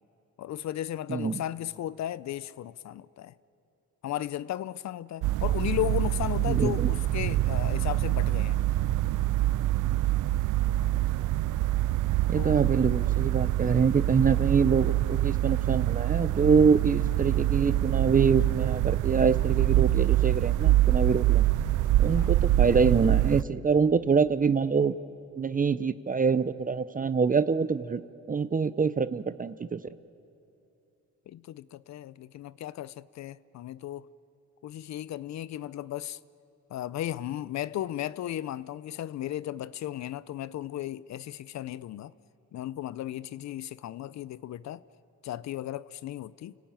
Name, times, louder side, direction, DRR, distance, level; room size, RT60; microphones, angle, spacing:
voice 1, 0.4-3.3 4.0-8.6 12.3-12.6 22.2-22.3 31.3-34.1 34.6-36.2 36.7-42.1 42.5-44.8 45.2-46.6, left 12 dB, 65° left, 0.6 m, -35 dB
sound 1, 5.2-23.4, right 14 dB, 80° right, 0.6 m, -25 dB
voice 2, 6.5-6.9 12.3-21.4 22.0-25.0 25.4-28.0 28.3-29.8, right 5 dB, 30° right, 0.7 m, -25 dB
29.5 x 18.0 x 9.0 m
cardioid pair, 90°, 30 cm